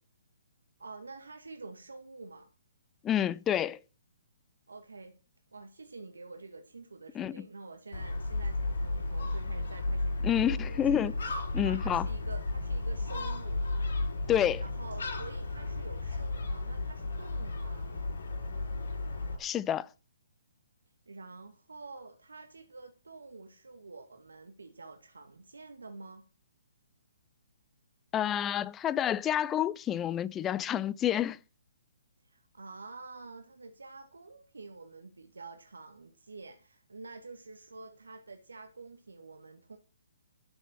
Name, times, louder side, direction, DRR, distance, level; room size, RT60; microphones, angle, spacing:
voice 1, 0.8-2.5 4.7-5.2 5.5-11.0 11.5-13.7 14.6-17.9 21.1-26.2 32.2-39.8, right 3 dB, 80° right, 2.0 m, -48 dB
voice 2, 3.0-3.8 7.1-7.5 10.2-11.1 11.5-12.1 14.3-14.6 19.4-19.9 28.1-31.4, left 10 dB, 20° left, 0.7 m, -29 dB
Gull seagull, 7.9-19.4, left 2 dB, 70° left, 7.1 m, -34 dB
13.0 x 6.7 x 7.8 m
figure-of-eight pair, 135°, 0 cm